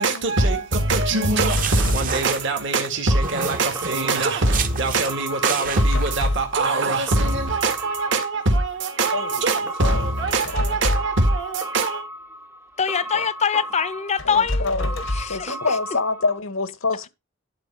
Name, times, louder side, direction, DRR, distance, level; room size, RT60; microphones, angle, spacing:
voice 1, 0.0-12.0, right 2 dB, 65° right, 2.0 m, -22 dB
sound 1, 1.2-2.9 3.2-4.0 4.5-5.1 5.4-6.3, right 6 dB, 40° right, 1.0 m, -30 dB
sound 2, 1.5-2.2 5.6-6.6 10.3-11.3 14.2-15.4, left 1 dB, 75° left, 1.1 m, -27 dB
sound 3, 3.1-16.4, right 1 dB, 10° right, 0.6 m, -36 dB
voice 2, 9.1-10.1 10.5-10.8 13.1-13.2 14.2-14.9 15.3-17.1, left 3 dB, 90° left, 1.3 m, -27 dB
voice 3, 12.8-15.8, left 6 dB, 35° left, 0.7 m, -24 dB
11.5 x 4.1 x 5.6 m
head